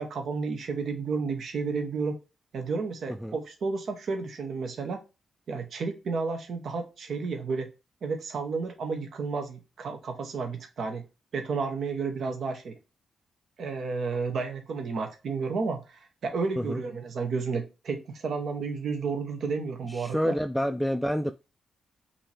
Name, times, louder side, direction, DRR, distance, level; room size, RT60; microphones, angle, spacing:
voice 1, 0.0-2.2 2.5-5.0 5.5-7.7 8.0-11.0 11.3-12.8 13.6-20.4, right 4 dB, 70° right, 5 dB, 1.0 m, -32 dB
voice 2, 19.9-21.3, equal, ahead, 7 dB, 0.3 m, -28 dB
5.5 x 2.8 x 3.3 m, 0.29 s
cardioid pair, 70°, 0 cm